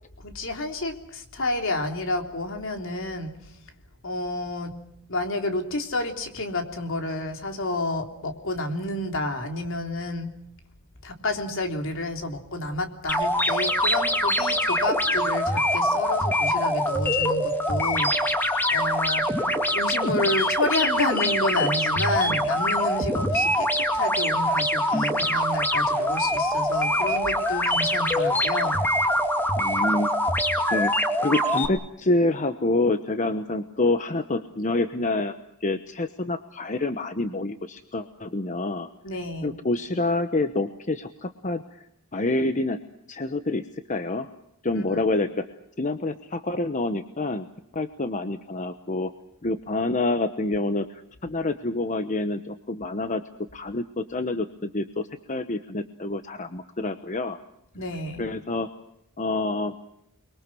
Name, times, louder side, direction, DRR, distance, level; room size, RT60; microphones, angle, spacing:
voice 1, 0.2-3.4 4.0-4.7 5.1-10.3 11.0-18.2 18.7-19.3 19.7-28.8 39.0-39.5 44.7-45.0 57.7-58.2, left 2 dB, 60° left, 4 dB, 3.5 m, -30 dB
sound 1, 13.1-31.7, equal, 10° left, 2.2 m, -24 dB
voice 2, 29.6-30.1 30.7-35.3 35.6-38.9 39.4-42.8 43.1-44.3 44.6-45.5 45.8-47.5 47.7-49.1 49.4-53.2 53.5-57.4 58.2-58.7 59.2-59.7, left 2 dB, 35° left, 9 dB, 1.1 m, -27 dB
29.5 x 22.5 x 6.2 m, 0.78 s
head